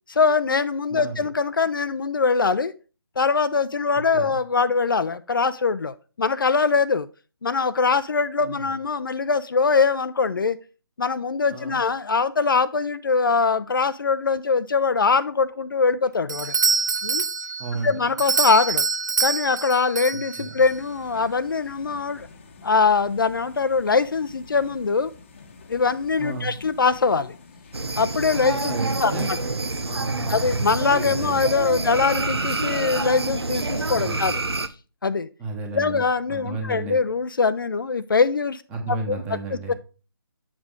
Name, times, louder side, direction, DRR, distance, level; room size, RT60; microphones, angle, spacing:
voice 1, 0.1-2.7 3.2-7.1 7.4-10.6 11.0-16.6 17.0-17.2 17.8-18.9 19.2-22.3 22.6-25.1 25.7-27.3 28.0-29.4 30.3-34.4 35.0-35.3 35.7-38.6 38.9-39.4 39.7-39.8, left 4 dB, 60° left, 13 dB, 0.5 m, -22 dB
voice 2, 0.9-1.3 4.1-4.3 8.4-8.7 11.5-11.8 17.6-18.0 20.4-20.5 26.2-26.6 28.6-29.5 29.8-30.5 31.0-31.8 33.9-34.3 35.4-36.0 36.3-37.0 38.7-39.7, right 3 dB, 10° right, 3 dB, 1.1 m, -33 dB
Doorbell, 16.3-20.8, right 5 dB, 50° right, 0.4 m, -25 dB
sound 1, 20.7-31.4, left 4 dB, 30° left, 0.9 m, -47 dB
sound 2, 27.7-34.7, right 3 dB, 90° right, 0.7 m, -27 dB
7.4 x 6.0 x 3.6 m, 0.34 s
figure-of-eight pair, 150°, 13 cm